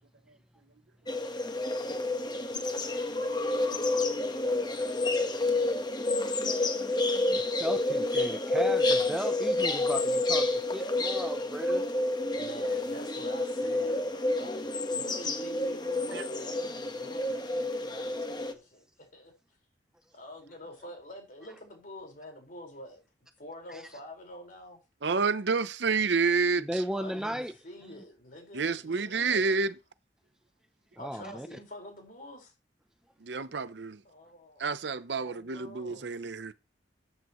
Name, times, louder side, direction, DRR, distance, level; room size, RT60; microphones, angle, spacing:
sound 1, 1.1-18.5, left 2 dB, 25° left, 1.2 m, -29 dB
voice 1, 7.3-11.9 23.7-23.8 26.6-27.5 31.0-31.6, equal, 5° right, 0.6 m, -35 dB
voice 2, 12.3-19.3 20.1-23.0 23.4-24.8 26.9-27.4 27.6-29.6 31.0-32.5 34.0-34.7 35.1-36.2, left 1 dB, 50° left, 4.7 m, -46 dB
voice 3, 25.0-26.8 28.5-29.7 33.2-34.0 34.6-36.5, right 4 dB, 70° right, 0.7 m, -29 dB
14.0 x 9.1 x 3.1 m
head